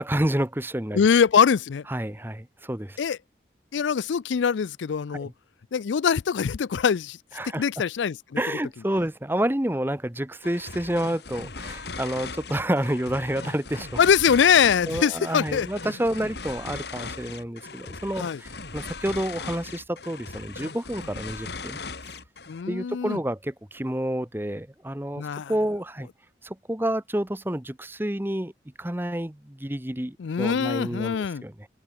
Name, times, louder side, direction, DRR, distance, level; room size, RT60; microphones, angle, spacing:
voice 1, 0.0-1.0 1.9-3.0 5.1-5.3 7.4-7.6 8.4-14.0 14.8-22.2 22.7-26.1 26.4-28.5 28.8-31.7, right 1 dB, 10° right, 1.1 m, -29 dB
voice 2, 0.9-1.9 3.0-3.2 3.7-5.3 5.7-7.2 7.6-8.4 14.0-15.7 18.2-18.4 22.5-23.2 25.2-25.5 30.2-31.4, left 7 dB, 85° left, 0.4 m, -23 dB
sound 1, 10.4-22.7, left 4 dB, 65° left, 2.0 m, -38 dB
head